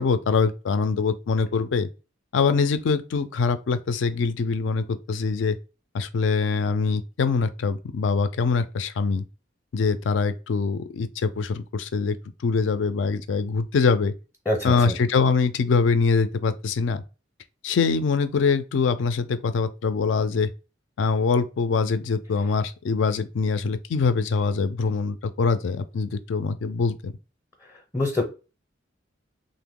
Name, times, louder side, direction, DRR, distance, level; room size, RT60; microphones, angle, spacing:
voice 1, 0.0-1.9 2.3-5.6 5.9-9.2 9.7-12.2 12.4-14.1 14.6-17.0 17.6-20.5 21.0-27.1, left 4 dB, 70° left, 0.4 m, -23 dB
voice 2, 14.5-15.0 27.6-28.2, left 2 dB, 15° left, 0.6 m, -26 dB
2.9 x 2.0 x 3.6 m
head